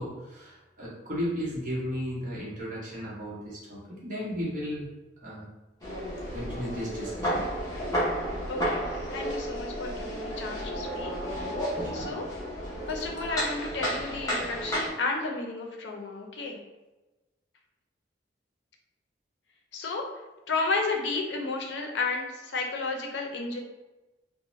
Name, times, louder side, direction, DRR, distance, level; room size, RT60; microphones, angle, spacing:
voice 1, 0.0-4.9 5.2-5.4 6.3-7.4 11.8-12.1, equal, 45° right, -6 dB, 0.8 m, -35 dB
sound 1, 5.8-14.9, equal, 20° left, 0.6 m, -32 dB
voice 2, 8.5-11.4 11.9-12.2 12.9-16.6 19.7-20.0 20.5-23.6, left 3 dB, 75° left, 2 dB, 0.5 m, -32 dB
2.5 x 2.0 x 3.0 m, 1.1 s
head